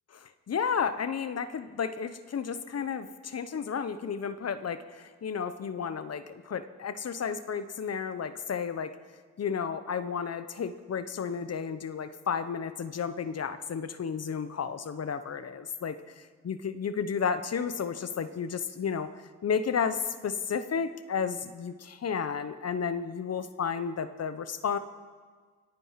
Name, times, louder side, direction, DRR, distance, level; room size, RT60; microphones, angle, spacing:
voice 1, 0.1-8.9 9.4-19.1 19.4-24.8, left 6 dB, 60° left, 12 dB, 0.9 m, -32 dB
23.5 x 9.1 x 5.8 m, 1.5 s
cardioid pair, 75°, 29 cm